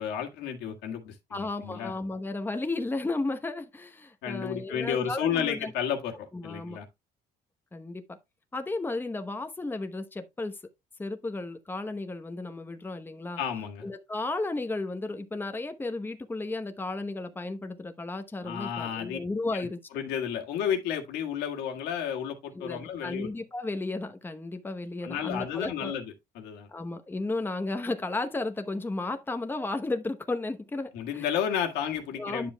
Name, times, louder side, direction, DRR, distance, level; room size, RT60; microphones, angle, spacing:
voice 1, 0.0-1.9 4.2-6.9 13.4-13.9 18.4-19.2 19.5-19.7 19.9-23.3 25.0-26.7 30.9-32.5, left 8 dB, 85° left, 1.8 m, -32 dB
voice 2, 1.3-5.7 6.3-6.8 7.7-8.2 8.5-10.6 11.0-13.4 13.8-19.8 22.5-26.0 26.7-31.3 32.1-32.5, left 2 dB, 10° left, 0.9 m, -34 dB
10.5 x 7.0 x 2.2 m
cardioid pair, 110°, 17 cm